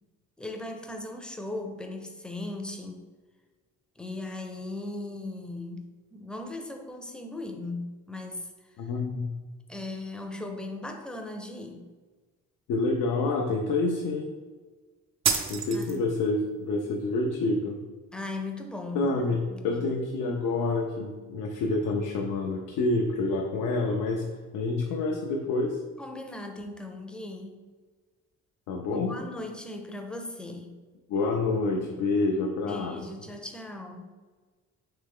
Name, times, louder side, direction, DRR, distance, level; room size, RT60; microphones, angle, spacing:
voice 1, 0.4-3.0 4.0-8.5 9.7-11.9 15.7-16.1 18.1-19.8 26.0-27.6 28.9-30.8 32.7-34.1, left 2 dB, 5° left, 3 dB, 0.5 m, -38 dB
voice 2, 8.8-9.3 12.7-14.3 15.5-17.8 18.9-24.3 24.5-25.8 28.7-29.1 31.1-33.0, left 3 dB, 90° left, 0 dB, 0.5 m, -28 dB
sound 1, 15.2-16.3, right 6 dB, 60° right, 0.6 m, -28 dB
3.4 x 3.1 x 3.5 m, 1.4 s
cardioid pair, 90°, 30 cm